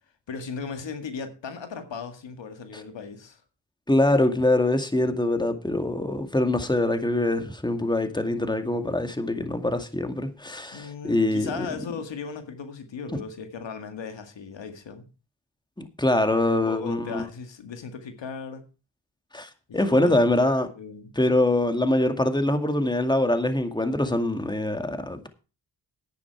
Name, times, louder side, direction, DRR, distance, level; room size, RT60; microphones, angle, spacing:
voice 1, 0.3-3.4 10.7-15.1 16.4-18.6 19.7-20.2 20.8-21.1, left 5 dB, 80° left, 2.0 m, -37 dB
voice 2, 3.9-11.7 13.1-13.2 15.8-17.2 19.3-20.7 21.2-25.3, left 1 dB, 10° left, 2.1 m, -24 dB
10.5 x 9.8 x 4.7 m
cardioid pair, 45°, 44 cm